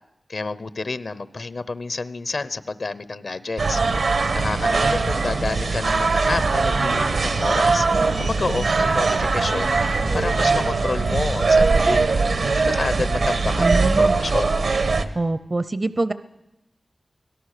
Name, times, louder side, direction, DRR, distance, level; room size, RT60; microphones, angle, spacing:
voice 1, 0.3-3.8 4.3-7.8 8.2-12.1 12.4-14.6, left 3 dB, 65° left, 15 dB, 0.8 m, -29 dB
sound 1, 3.6-15.1, right 3 dB, 80° right, 1.3 m, -21 dB
voice 2, 13.6-14.2 15.2-16.1, right 2 dB, 40° right, 13 dB, 0.6 m, -24 dB
24.5 x 17.5 x 6.7 m, 0.92 s
wide cardioid pair, 70°, 0 cm